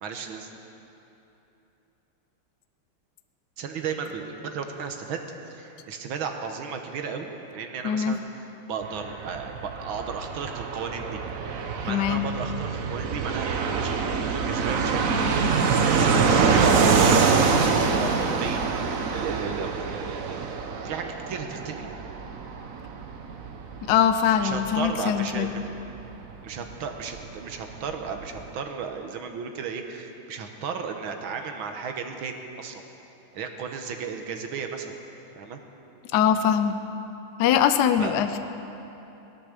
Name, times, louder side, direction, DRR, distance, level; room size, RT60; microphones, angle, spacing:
voice 1, 0.0-0.5 3.6-5.2 5.5-8.2 8.7-11.2 11.9-18.6 19.1-21.9 24.4-25.6 26.4-32.8 33.3-34.9 35.4-35.6 38.0-38.1, right 6 dB, 75° right, 5 dB, 1.9 m, -34 dB
voice 2, 7.8-8.2 11.8-12.2 23.8-25.5 36.1-36.8 37.4-38.4, left 9 dB, 65° left, 9 dB, 1.1 m, -22 dB
Fixed-wing aircraft airplane, 8.8-27.2 27.5-27.6 27.8-28.5, right 5 dB, 55° right, 1.0 m, -25 dB
17.0 x 12.0 x 6.6 m, 3.0 s
omnidirectional pair, 2.3 m